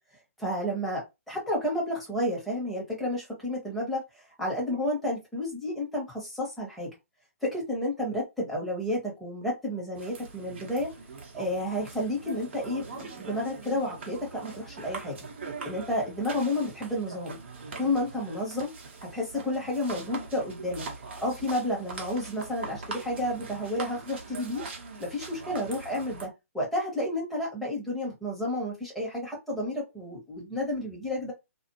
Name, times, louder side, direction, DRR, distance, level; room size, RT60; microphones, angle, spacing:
voice 1, 0.4-4.0 4.4-6.9 7.4-10.9 11.3-15.2 15.6-17.4 17.8-18.7 19.0-20.8 21.2-24.6 25.0-31.3, left 1 dB, ahead, -5 dB, 1.2 m, -31 dB
sound 1, 9.9-26.3, right 4 dB, 45° right, 0.9 m, -42 dB
2.5 x 2.4 x 3.0 m, 0.23 s
figure-of-eight pair, 130°, 8 cm